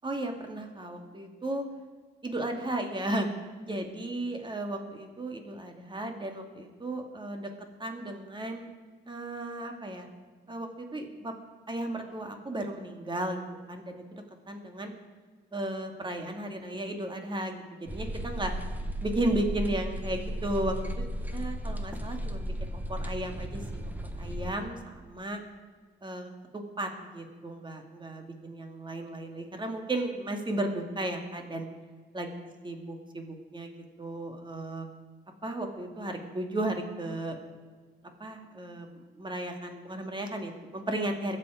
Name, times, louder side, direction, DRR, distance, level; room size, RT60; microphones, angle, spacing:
voice 1, 0.0-1.6 2.2-3.3 3.7-7.5 7.8-8.7 9.1-10.1 10.5-11.3 11.7-14.9 15.5-18.5 19.0-20.9 21.3-25.4 26.0-31.7 32.1-32.3 32.6-34.9 35.4-37.4 38.2-38.9 39.2-41.4, right 1 dB, 25° right, 4 dB, 2.2 m, -35 dB
sound 1, 17.9-24.6, equal, 10° right, 1.3 m, -35 dB
22.5 x 7.7 x 5.0 m, 1.5 s
cardioid pair, 95°, 19 cm